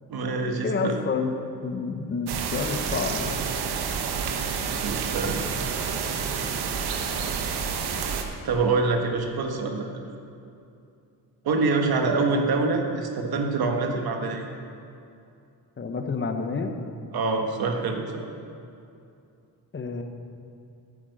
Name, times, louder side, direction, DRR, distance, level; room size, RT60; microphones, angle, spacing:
voice 1, 0.1-1.0 4.4-5.4 8.4-9.9 11.4-14.5 17.1-18.3, right 3 dB, 70° right, 3 dB, 1.5 m, -26 dB
voice 2, 0.6-1.3 1.6-3.4 15.8-16.7 19.7-20.0, left 4 dB, 30° left, 5 dB, 1.0 m, -29 dB
sound 1, 2.3-8.2, right 6 dB, 90° right, 1.1 m, -29 dB
9.7 x 8.9 x 6.6 m, 2.6 s
cardioid pair, 110°, 38 cm